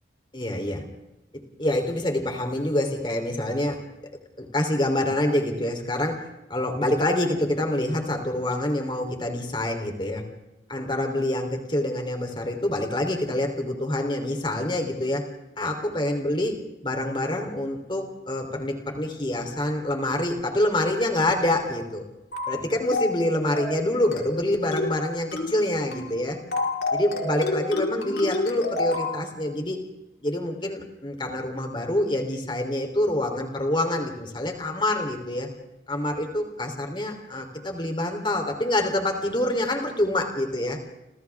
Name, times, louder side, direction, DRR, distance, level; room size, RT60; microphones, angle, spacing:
voice 1, 0.3-0.8 1.6-3.8 4.4-6.2 6.5-10.2 10.7-15.3 15.6-16.5 16.8-22.0 22.5-26.4 26.9-29.8 30.2-35.5 35.9-40.8, left 1 dB, 25° left, 4 dB, 3.7 m, -26 dB
sound 1, 22.3-22.6 22.9-23.2 23.5-23.8 24.1-24.4 24.7-25.0 25.3-25.6 25.9-26.1 26.5-29.2, left 2 dB, 65° left, 4.5 m, -28 dB
30.0 x 28.0 x 3.7 m, 0.94 s
head